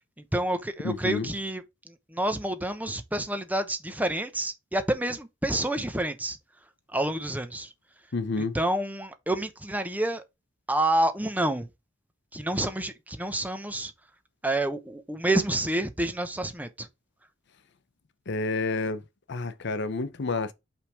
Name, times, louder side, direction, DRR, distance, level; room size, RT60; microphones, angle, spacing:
voice 1, 0.3-6.4 6.9-7.7 8.4-10.2 10.7-11.7 12.3-13.9 14.4-16.9, right 1 dB, 10° right, 0.8 m, -28 dB
voice 2, 0.8-1.3 8.1-8.5 18.3-19.0 19.3-20.5, left 3 dB, 60° left, 0.7 m, -29 dB
5.6 x 3.5 x 4.8 m
head